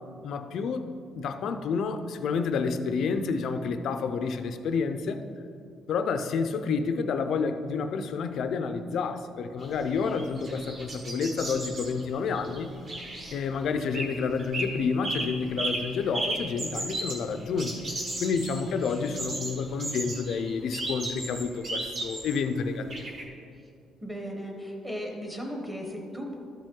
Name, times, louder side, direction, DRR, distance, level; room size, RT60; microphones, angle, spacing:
voice 1, 0.2-0.8 1.1-5.2 5.9-12.7 13.3-17.8 18.2-23.1, left 5 dB, 50° left, 8 dB, 0.5 m, -29 dB
sound 1, 9.6-14.1 14.4-14.7 15.0-22.4 22.9-23.2, right 2 dB, 35° right, 1.5 m, -35 dB
voice 2, 24.0-26.4, equal, 5° right, 1 dB, 1.0 m, -36 dB
13.0 x 5.2 x 3.7 m, 2.5 s
cardioid pair, 175°, 0 cm